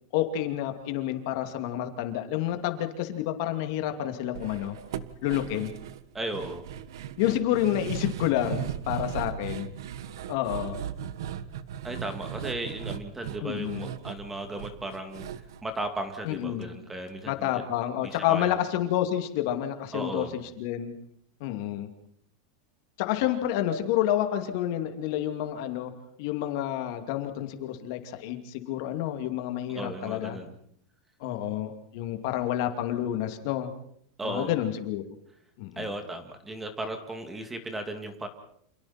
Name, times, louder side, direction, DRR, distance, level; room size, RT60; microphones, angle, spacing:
voice 1, 0.1-4.8 5.2-5.7 7.2-9.7 10.3-10.8 13.4-13.9 16.3-16.7 17.3-20.9 21.4-21.9 23.0-25.9 26.2-30.4 31.2-33.7 34.2-35.0 35.6-35.8, left 12 dB, 55° left, 6 dB, 2.6 m, -29 dB
sound 1, 4.3-16.6 16.9-17.0 17.4-17.5, right 9 dB, 85° right, 1.5 m, -38 dB
voice 2, 6.1-6.6 11.8-15.3 15.6-17.6 18.0-18.6 19.9-20.3 29.7-30.6 34.2-34.5 35.8-38.3, right 1 dB, 10° right, 6 dB, 2.4 m, -35 dB
29.5 x 27.5 x 4.4 m, 0.67 s
supercardioid pair, 165°, 2 cm